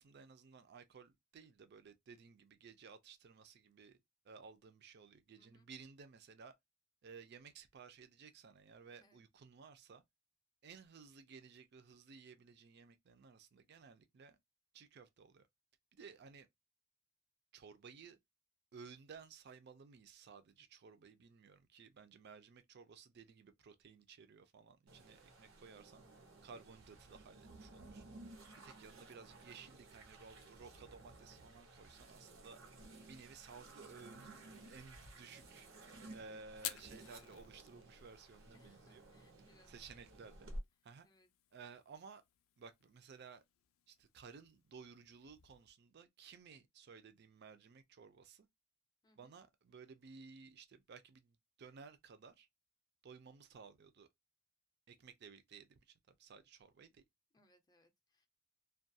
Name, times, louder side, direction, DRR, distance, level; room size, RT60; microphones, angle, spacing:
voice 1, 0.0-4.0 4.2-6.5 7.0-10.0 10.6-14.4 14.7-15.5 15.9-16.5 17.5-18.2 18.7-26.0 26.4-28.0 28.6-32.6 33.0-35.7 36.1-39.0 39.7-40.5 40.8-41.1 41.5-42.2 42.6-43.4 43.9-48.5 49.2-52.5 53.0-54.1 54.9-57.0, right 5 dB, 55° right, 0.4 m, -57 dB
voice 2, 5.4-5.7 8.9-9.2 28.4-28.8 38.5-39.7 41.0-41.3 49.0-49.3 57.3-58.3, left 1 dB, 20° left, 0.5 m, -71 dB
sound 1, 24.9-40.6, right 1 dB, 90° right, 0.7 m, -55 dB
Fire, 36.5-45.7, left 13 dB, 80° left, 0.3 m, -54 dB
2.3 x 2.2 x 2.6 m
head